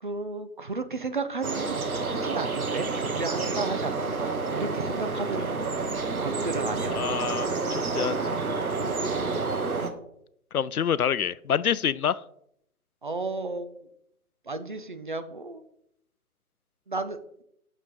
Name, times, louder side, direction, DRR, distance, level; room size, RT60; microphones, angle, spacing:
voice 1, 0.0-5.5 6.2-7.0 13.0-13.9 14.5-15.6 16.9-17.4, right 3 dB, 35° right, 9 dB, 0.5 m, -33 dB
sound 1, 1.4-9.9, right 3 dB, 70° right, 1.4 m, -29 dB
voice 2, 6.9-8.1 8.5-8.6 10.5-12.2, left 8 dB, 75° left, 19 dB, 0.5 m, -27 dB
9.4 x 6.5 x 3.9 m, 0.73 s
figure-of-eight pair, 145°, 45 cm